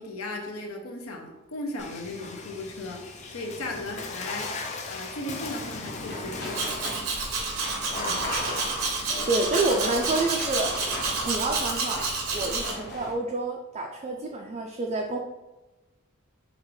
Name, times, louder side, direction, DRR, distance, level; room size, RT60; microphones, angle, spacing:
voice 1, 0.0-6.7 7.9-8.3, left 2 dB, 80° left, 2 dB, 0.8 m, -37 dB
Water / Splash splatter, 1.8-11.8, left 2 dB, 30° left, 0.5 m, -38 dB
sound 1, 5.6-13.1, left 1 dB, 50° left, 0.9 m, -39 dB
Domestic sounds home sounds, 6.5-12.7, right 4 dB, 90° right, 0.9 m, -29 dB
voice 2, 9.3-10.7 11.2-15.2, right 2 dB, 30° right, 0 dB, 0.4 m, -28 dB
6.5 x 2.5 x 3.1 m, 1.1 s
head